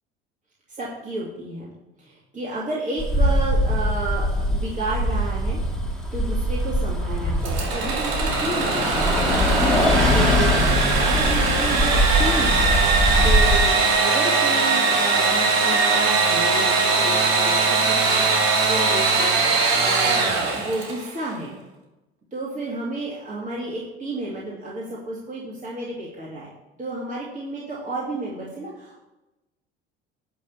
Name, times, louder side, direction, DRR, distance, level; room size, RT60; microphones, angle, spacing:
voice 1, 0.8-5.6 6.1-9.4 10.1-12.7 13.2-13.7 14.0-18.3 18.6-20.2 20.5-21.5 22.3-26.5 26.8-29.0, right 2 dB, 25° right, -6 dB, 2.8 m, -31 dB
Bus, 3.0-13.7, equal, ahead, 2.2 m, -22 dB
Engine / Sawing, 7.4-21.1, right 4 dB, 55° right, 3.0 m, -21 dB
11.0 x 3.9 x 7.3 m, 0.99 s
hypercardioid pair, 65°, 31 cm